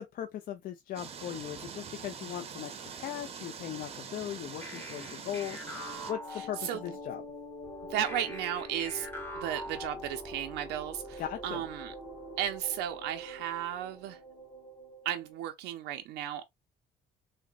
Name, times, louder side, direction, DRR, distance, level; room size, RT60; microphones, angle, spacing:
voice 1, 0.0-7.2 11.2-11.6, left 10 dB, 55° left, 0.4 m, -39 dB
sound 1, 0.9-6.1, right 6 dB, 35° right, 0.6 m, -44 dB
sound 2, 4.6-7.1 8.1-10.6, left 1 dB, 15° left, 1.0 m, -44 dB
sound 3, 5.2-15.4, equal, 30° left, 1.4 m, -45 dB
voice 2, 6.3-6.8 7.9-9.1 9.3-11.9 12.4-14.2 15.1-16.4, right 11 dB, 85° right, 0.5 m, -34 dB
3.8 x 2.1 x 2.3 m
cardioid pair, 110°, 17 cm